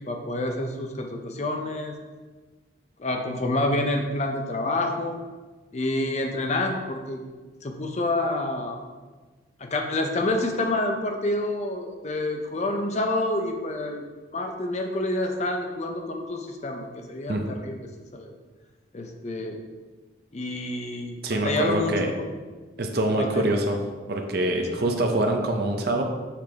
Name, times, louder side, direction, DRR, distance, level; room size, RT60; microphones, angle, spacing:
voice 1, 0.0-2.0 3.0-5.2 5.7-7.2 7.6-8.8 9.6-14.0 14.3-17.8 18.1-18.3 18.9-19.6 20.3-22.3 23.2-23.5 24.6-24.7, left 2 dB, 35° left, 4 dB, 0.5 m, -28 dB
voice 2, 21.2-22.1 22.8-23.8 24.1-26.0, right 1 dB, 55° right, 3 dB, 0.7 m, -25 dB
5.8 x 3.4 x 5.0 m, 1.3 s
head